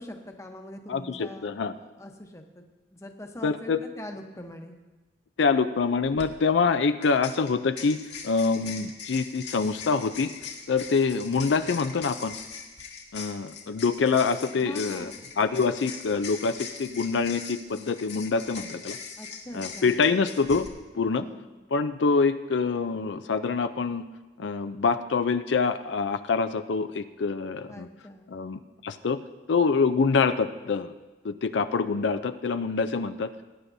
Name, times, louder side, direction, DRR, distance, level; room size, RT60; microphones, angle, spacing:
voice 1, 0.0-1.5 1.7-2.6 2.9-4.8 14.5-15.2 19.2-20.0 21.1-21.5 27.7-28.3, left 1 dB, 15° left, 3 dB, 0.9 m, -42 dB
voice 2, 0.9-1.7 3.4-3.8 5.4-10.3 10.7-12.3 13.1-15.1 15.4-19.0 19.5-20.7 20.9-21.3 21.7-24.0 24.4-27.9 28.3-29.2 29.5-30.9 31.2-33.3, left 4 dB, 85° left, 10 dB, 0.5 m, -25 dB
sound 1, 6.2-6.3 7.0-20.7, left 6 dB, 70° left, 1.4 m, -41 dB
19.5 x 9.9 x 2.7 m, 1.1 s
head